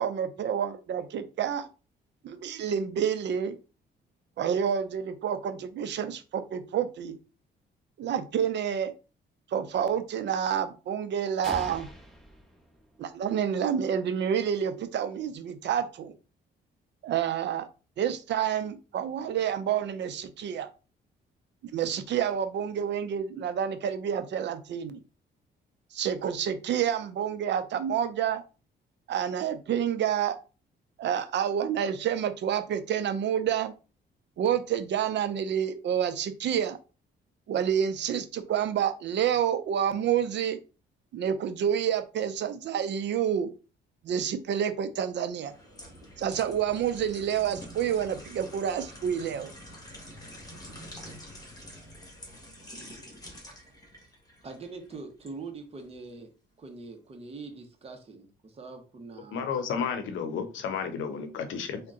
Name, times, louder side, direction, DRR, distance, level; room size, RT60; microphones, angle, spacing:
voice 1, 0.0-1.7 2.2-3.6 4.4-7.1 8.0-8.9 9.5-11.9 13.0-16.1 17.0-17.7 18.0-20.7 21.7-25.0 25.9-28.4 29.1-30.4 31.0-33.7 34.4-36.8 37.5-40.6 41.1-43.5 44.0-45.5 46.2-49.5, right 8 dB, 65° right, 0.6 m, -28 dB
sound 1, 11.4-13.4, equal, ahead, 1.1 m, -43 dB
sound 2, 45.4-55.4 55.8-56.0, equal, 20° left, 1.4 m, -47 dB
voice 2, 54.4-56.3 56.6-59.5 61.8-61.9, right 4 dB, 30° right, 0.9 m, -43 dB
voice 3, 59.3-61.8, left 6 dB, 80° left, 0.7 m, -32 dB
3.7 x 2.2 x 3.7 m
cardioid pair, 90°, 20 cm